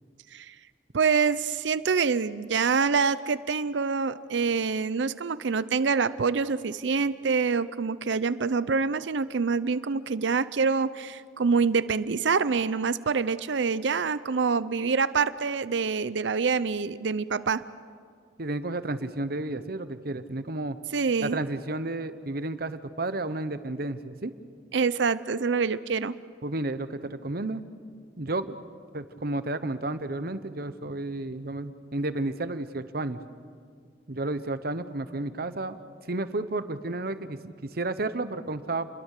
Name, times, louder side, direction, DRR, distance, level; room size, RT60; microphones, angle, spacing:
voice 1, 0.9-17.6 20.9-21.4 24.7-26.2, right 5 dB, 80° right, 15 dB, 0.6 m, -26 dB
voice 2, 18.4-20.8 21.2-24.3 26.4-27.6 28.2-28.5 28.9-33.2 34.1-35.8 36.1-38.9, right 2 dB, 55° right, 12 dB, 1.0 m, -32 dB
29.0 x 22.5 x 6.7 m, 2.1 s
head